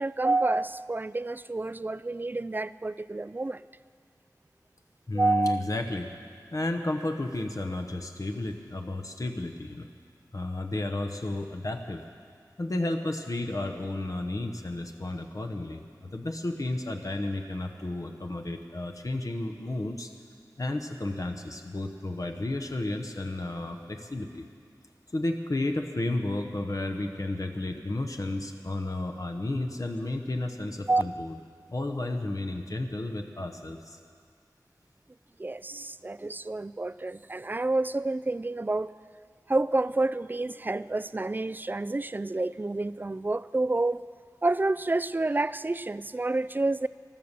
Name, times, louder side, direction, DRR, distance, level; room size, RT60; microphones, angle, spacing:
voice 1, 0.0-3.6 5.1-5.6 30.9-31.0 35.4-38.9 39.5-44.0 44.4-46.9, right 2 dB, 25° right, 16 dB, 0.3 m, -28 dB
voice 2, 5.1-6.1 6.5-9.9 10.3-12.0 12.6-20.1 20.6-24.4 25.1-31.4 31.7-34.0, left 2 dB, 50° left, 5 dB, 0.9 m, -32 dB
14.5 x 12.5 x 6.7 m, 2.2 s
wide cardioid pair, 60°, 7 cm